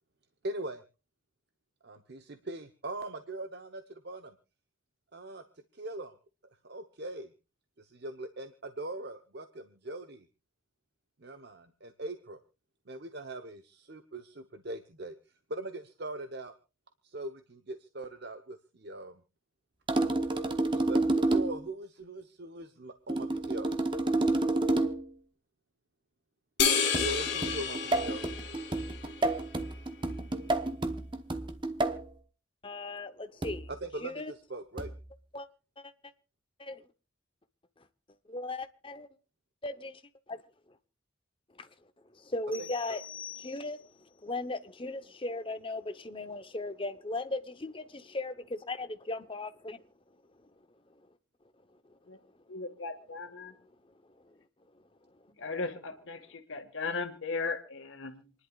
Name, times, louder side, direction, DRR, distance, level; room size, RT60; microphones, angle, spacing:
voice 1, 0.4-0.8 1.8-4.4 5.1-5.4 5.7-6.2 6.6-7.3 7.8-10.2 11.2-12.4 12.9-15.2 15.5-16.5 17.0-19.2 20.7-23.8 26.9-28.3 33.7-34.9 42.6-42.7, right 2 dB, 55° right, 0.9 m, -41 dB
sound 1, 19.9-21.7 23.1-25.1 26.9-32.1 33.4-33.8 34.8-35.1, right 2 dB, 25° right, 1.0 m, -30 dB
sound 2, 26.6-29.3, left 6 dB, 55° left, 2.3 m, -30 dB
voice 2, 32.6-33.7 34.0-34.3 35.3-35.5 35.8-35.9 36.6-36.8 38.3-39.1 39.6-40.0 40.3-40.4 41.6-41.7 42.1-43.1 43.4-49.8 52.2-52.3 54.2-54.4, left 2 dB, 25° left, 0.9 m, -37 dB
sound 3, 42.5-44.0, left 9 dB, 5° left, 3.3 m, -46 dB
voice 3, 52.5-53.5 55.4-58.3, left 4 dB, 75° left, 1.7 m, -37 dB
27.5 x 11.0 x 2.4 m
head